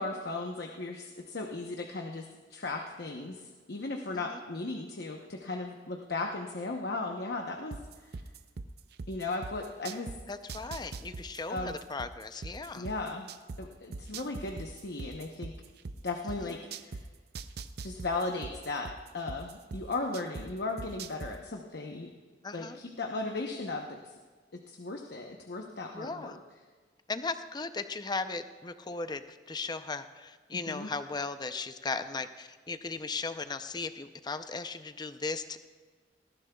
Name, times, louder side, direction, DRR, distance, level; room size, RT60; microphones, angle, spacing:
voice 1, 0.0-8.2 9.1-10.1 11.5-11.8 12.7-13.3 13.6-15.5 16.0-17.0 17.8-22.1 22.5-24.1 24.7-26.4 30.7-30.9, left 3 dB, 65° left, 2 dB, 0.9 m, -36 dB
sound 1, 7.7-10.2 10.5-13.6 13.9-17.0 17.3-20.4 20.8-21.3, right 4 dB, 65° right, 0.6 m, -40 dB
voice 2, 10.3-12.9 16.4-16.5 22.4-22.8 25.9-26.4 27.1-35.6, left 3 dB, 25° left, 10 dB, 0.6 m, -37 dB
19.0 x 14.5 x 2.3 m, 1.5 s
head